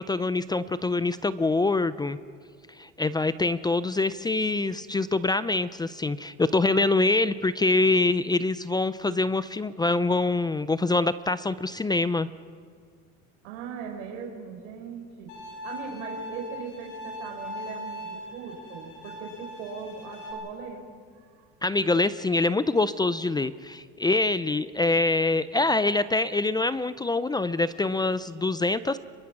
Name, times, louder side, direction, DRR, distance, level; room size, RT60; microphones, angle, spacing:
voice 1, 0.0-2.2 2.8-12.3 21.6-29.0, left 3 dB, 10° left, 15 dB, 0.5 m, -25 dB
voice 2, 13.4-15.3 15.6-20.9 21.1-21.4, right 6 dB, 90° right, 1 dB, 4.4 m, -39 dB
Bowed string instrument, 15.3-20.3, left 1 dB, 85° left, 7.0 m, -40 dB
25.0 x 22.5 x 6.1 m, 2.1 s
supercardioid pair, 120°, 35 cm